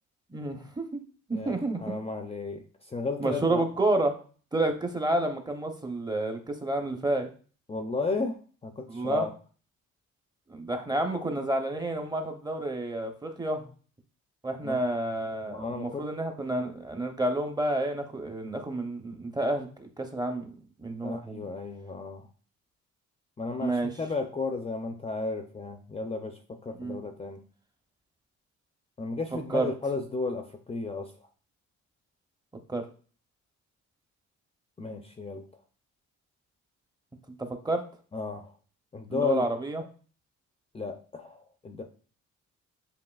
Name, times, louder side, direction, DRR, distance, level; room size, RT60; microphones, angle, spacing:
voice 1, 0.3-1.0 1.3-2.0 3.2-4.2 4.5-7.3 8.9-9.3 10.5-13.6 14.4-20.5 20.8-21.4 23.6-23.9 26.8-27.0 29.5-29.7 32.7-32.9 37.3-37.8 39.1-39.8, right 2 dB, 15° right, 5 dB, 0.7 m, -30 dB
voice 2, 1.3-3.7 7.7-9.3 14.6-14.8 15.4-16.0 21.0-22.3 23.4-27.4 29.0-31.1 34.8-35.5 38.1-38.5 38.9-39.5 40.7-41.8, left 3 dB, 20° left, 5 dB, 0.5 m, -34 dB
7.5 x 2.6 x 2.3 m, 0.40 s
cardioid pair, 90°, 30 cm